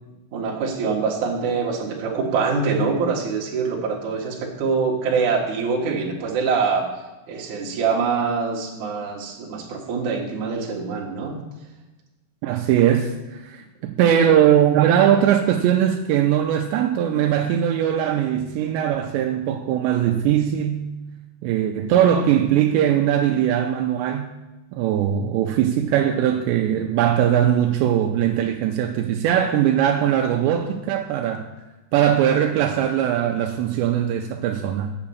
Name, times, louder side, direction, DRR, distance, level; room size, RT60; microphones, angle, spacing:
voice 1, 0.3-6.9 7.3-11.4, right 5 dB, 60° right, 2.2 m, -24 dB
voice 2, 12.4-20.9 21.4-24.3 24.7-31.5 31.9-35.0, right 10 dB, 85° right, 2.5 m, -20 dB
8.7 x 6.9 x 7.1 m
omnidirectional pair, 5.6 m